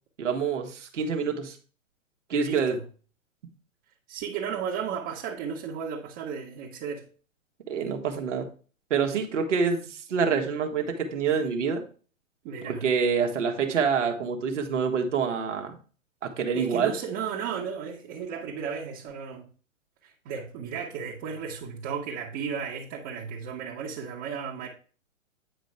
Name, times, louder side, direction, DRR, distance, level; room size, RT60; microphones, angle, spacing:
voice 1, 0.2-1.6 2.3-2.8 7.7-8.5 8.9-11.8 12.6-15.7 16.2-16.9, right 6 dB, 65° right, 1.5 m, -26 dB
voice 2, 2.3-2.8 4.1-7.0 12.4-12.8 16.5-19.4 20.0-24.7, right 6 dB, 30° right, 1.4 m, -34 dB
9.4 x 5.2 x 3.4 m
figure-of-eight pair, 115°, 40 cm